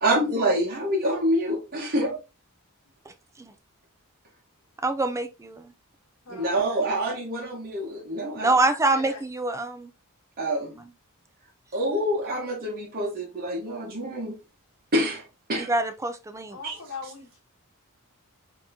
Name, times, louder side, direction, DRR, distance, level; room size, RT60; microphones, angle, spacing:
voice 1, 0.0-2.2 6.3-8.7 10.4-10.8 11.7-14.3 14.9-15.7 16.6-16.8, right 1 dB, 45° right, 1.1 m, -26 dB
voice 2, 4.8-5.7 8.4-9.9 10.8-10.9 15.7-16.6, right 2 dB, 15° right, 0.4 m, -25 dB
voice 3, 6.2-7.0 8.9-9.2 16.5-17.4, left 4 dB, 65° left, 1.2 m, -40 dB
4.2 x 2.9 x 2.7 m
head